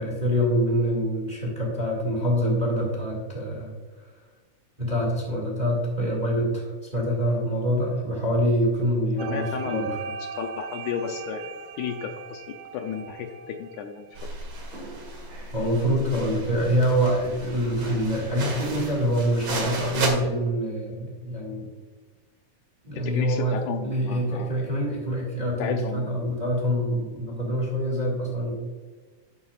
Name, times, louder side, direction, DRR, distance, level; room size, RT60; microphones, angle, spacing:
voice 1, 0.0-4.1 4.8-10.0 15.5-21.7 22.8-23.6 23.8-28.5, equal, 15° right, -2 dB, 1.7 m, -25 dB
voice 2, 9.2-14.2 23.0-24.5 25.6-26.2, left 7 dB, 80° left, 6 dB, 1.9 m, -33 dB
sound 1, 9.2-14.3, right 5 dB, 80° right, 2.1 m, -38 dB
sound 2, 14.2-20.1, right 3 dB, 45° right, 1.7 m, -34 dB
11.0 x 8.7 x 2.4 m, 1.4 s
omnidirectional pair, 3.6 m